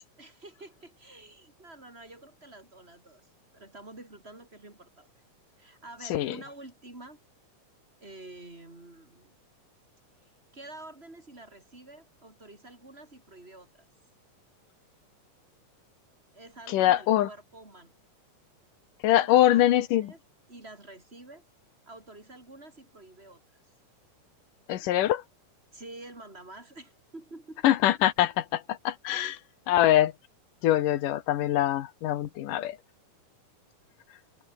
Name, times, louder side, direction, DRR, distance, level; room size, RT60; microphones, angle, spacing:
voice 1, 0.2-3.2 3.5-5.2 5.6-7.2 8.0-9.4 10.5-13.9 16.3-17.9 19.1-19.6 20.0-20.2 20.5-21.4 21.9-23.4 25.7-27.6 29.1-29.3, right 2 dB, 20° right, 4.6 m, -48 dB
voice 2, 16.7-17.3 19.0-20.1 24.7-25.2 27.6-29.4 29.7-30.1 30.6-32.8, left 13 dB, 85° left, 2.8 m, -23 dB
omnidirectional pair, 3.7 m